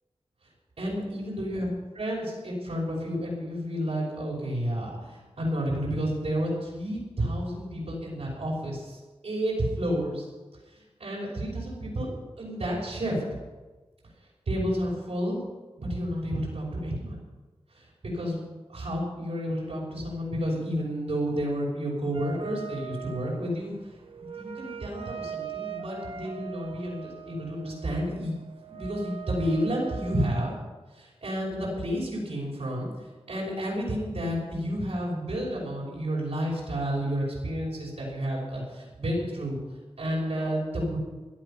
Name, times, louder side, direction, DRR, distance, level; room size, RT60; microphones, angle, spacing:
voice 1, 0.8-1.7 1.9-10.3 10.7-12.1 12.4-13.2 14.5-15.4 15.8-17.2 17.7-18.4 18.7-23.7 24.2-28.4 28.7-30.5 30.9-32.9 33.3-39.6 40.0-41.0, equal, 85° right, -4 dB, 5.9 m, -31 dB
sound 1, 22.1-30.6, right 8 dB, 60° right, 1.1 m, -41 dB
17.0 x 12.0 x 5.8 m, 1.3 s
wide cardioid pair, 85°, 10 cm